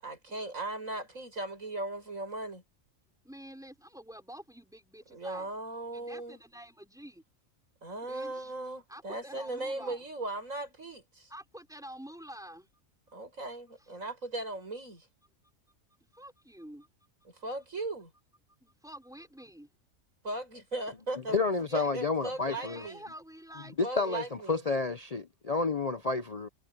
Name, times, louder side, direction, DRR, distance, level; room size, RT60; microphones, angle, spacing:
voice 1, 0.0-2.6 5.1-6.4 7.8-11.3 13.1-15.1 17.3-18.1 20.2-21.4 21.7-23.0 23.8-24.7, right 2 dB, 75° right, 7.6 m, -38 dB
voice 2, 3.2-5.5 5.9-7.2 8.0-8.5 8.9-10.0 11.3-12.7 16.1-16.9 18.6-19.7 21.7-21.9 22.5-24.3, equal, ahead, 4.5 m, -48 dB
voice 3, 21.3-22.8 23.8-26.5, left 3 dB, 35° left, 0.6 m, -30 dB
omnidirectional pair, 1.4 m